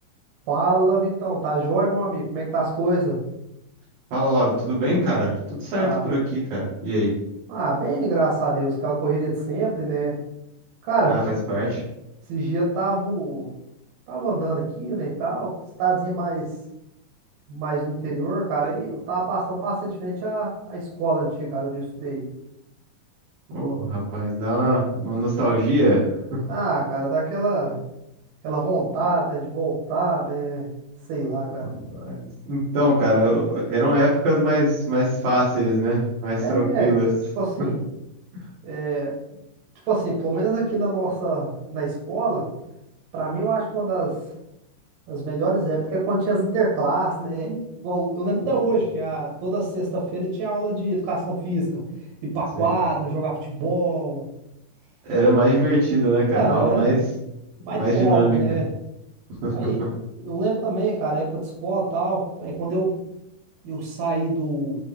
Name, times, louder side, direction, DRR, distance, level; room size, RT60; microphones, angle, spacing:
voice 1, 0.5-3.2 5.7-6.1 7.5-10.1 10.8-11.2 12.3-13.5 14.1-16.5 17.5-22.2 26.5-27.8 28.4-30.6 31.1-31.7 36.3-37.0 37.4-37.8 38.6-39.1 39.9-42.5 43.1-44.2 45.1-51.8 52.2-54.2 56.3-57.0 57.6-58.7 59.5-59.8 60.1-63.0 63.6-64.8, right 3 dB, 90° right, -5 dB, 3.3 m, -25 dB
voice 2, 4.1-5.3 5.6-7.1 11.0-11.2 11.5-11.8 23.5-26.4 31.6-32.2 32.5-37.1 52.6-52.7 55.1-57.0 57.7-58.4 59.4-59.9, right 1 dB, 70° right, -10 dB, 3.5 m, -22 dB
7.9 x 3.3 x 3.6 m, 0.86 s
omnidirectional pair, 4.2 m